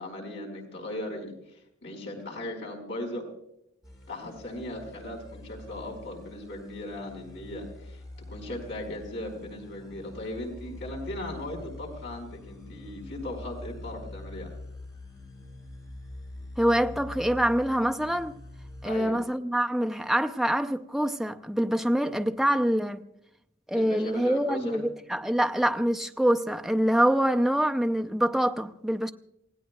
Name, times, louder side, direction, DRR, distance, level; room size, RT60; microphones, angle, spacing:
voice 1, 0.0-3.2 4.1-8.0 8.3-14.5 18.9-19.2 23.7-24.8, left 1 dB, 60° left, 5.1 m, -38 dB
sound 1, 3.8-18.9, left 2 dB, 20° left, 5.4 m, -44 dB
voice 2, 16.6-18.4 18.8-23.0 23.7-29.1, equal, ahead, 0.5 m, -25 dB
28.0 x 17.0 x 2.3 m
head